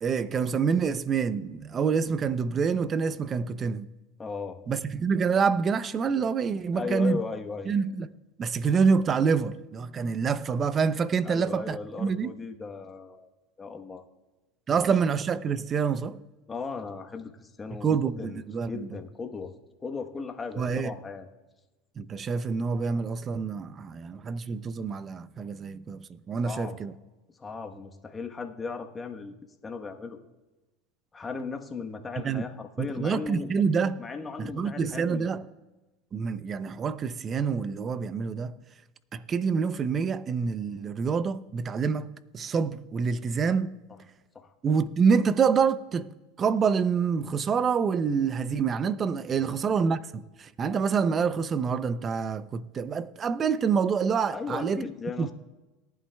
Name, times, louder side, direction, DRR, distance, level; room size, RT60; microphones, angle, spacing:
voice 1, 0.0-3.9 4.7-7.2 7.7-8.1 8.4-12.3 14.7-16.2 17.8-18.9 20.6-20.9 22.0-26.9 32.2-32.4 32.8-34.0 34.4-35.4 36.1-38.5 39.1-43.7 44.6-46.1 46.4-54.8 55.2-55.3, right 6 dB, 30° right, 0.5 m, -27 dB
voice 2, 4.2-4.6 6.7-7.7 11.2-13.3 13.6-14.0 16.5-18.4 18.7-19.5 19.8-21.3 26.4-26.8 27.3-29.3 29.6-30.2 31.1-33.5 34.0-35.3 44.3-44.5 49.3-49.5 54.3-55.3, left 4 dB, 20° left, 1.1 m, -37 dB
18.5 x 11.0 x 2.3 m
supercardioid pair, 110°, 0 cm